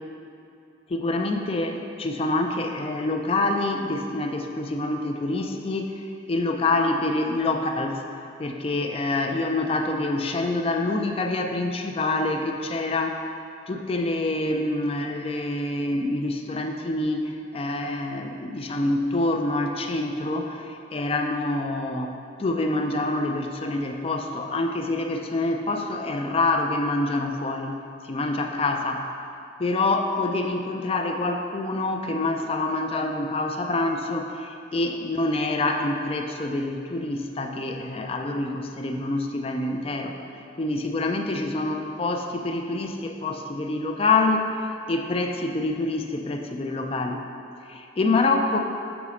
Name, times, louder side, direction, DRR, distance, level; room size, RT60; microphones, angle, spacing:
voice 1, 0.9-6.0 6.3-8.0 8.4-13.3 13.7-27.8 28.0-29.1 29.6-40.1 40.6-44.5 44.9-47.2 47.7-48.6, left 2 dB, 30° left, 4 dB, 0.4 m, -26 dB
7.1 x 4.1 x 4.9 m, 2.5 s
head